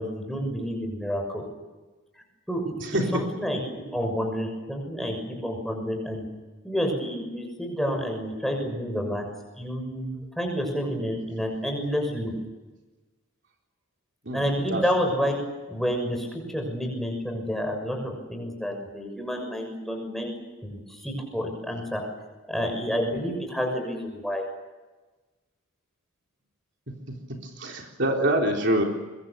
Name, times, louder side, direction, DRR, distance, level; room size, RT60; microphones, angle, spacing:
voice 1, 0.0-1.4 2.1-2.6 3.1-3.6 3.9-6.2 6.6-9.2 9.6-12.3 14.3-15.4 15.7-20.3 20.6-22.0 22.5-24.5, equal, ahead, 2 dB, 6.5 m, -29 dB
voice 2, 27.6-28.8, right 1 dB, 55° right, 1 dB, 3.7 m, -24 dB
24.0 x 24.0 x 6.9 m, 1.2 s
head